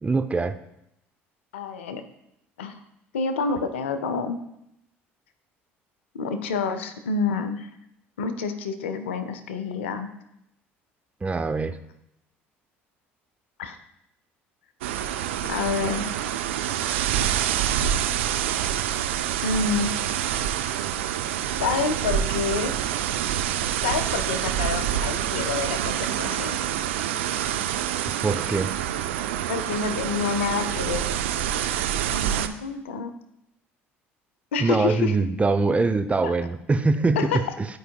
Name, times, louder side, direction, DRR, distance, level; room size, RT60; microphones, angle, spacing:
voice 1, 0.0-0.6 11.2-11.8 28.2-28.7 34.6-37.7, right 3 dB, 20° right, 8 dB, 0.5 m, -23 dB
voice 2, 1.5-2.0 2.6-2.8 3.1-4.4 6.1-7.7 8.2-10.1 13.6-13.8 15.5-16.0 19.4-19.9 21.6-22.7 23.8-26.6 29.5-31.0 32.1-33.1 34.5-35.1 36.2-36.3 37.2-37.4, left 5 dB, 85° left, 10 dB, 0.6 m, -28 dB
sound 1, 14.8-32.5, right 10 dB, 80° right, 0.4 m, -27 dB
12.0 x 4.7 x 2.3 m, 0.80 s
hypercardioid pair, 65°, 6 cm